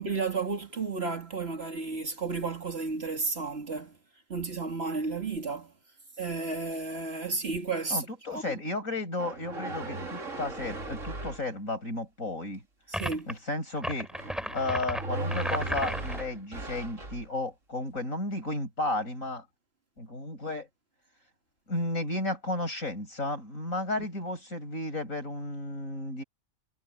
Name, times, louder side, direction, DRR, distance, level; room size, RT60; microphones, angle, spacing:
voice 1, 0.0-4.0 4.3-5.7 6.2-8.1 8.3-8.6 12.9-13.3, right 4 dB, 50° right, 2.6 m, -32 dB
voice 2, 7.9-12.6 13.3-14.1 14.5-19.5 20.0-20.7 21.7-26.2, left 2 dB, 80° left, 8.2 m, -33 dB
sound 1, 9.2-11.5 14.1-17.3, right 2 dB, 70° right, 3.2 m, -37 dB
sound 2, 12.9-13.3 13.8-16.3, equal, ahead, 3.0 m, -34 dB
omnidirectional pair, 1.4 m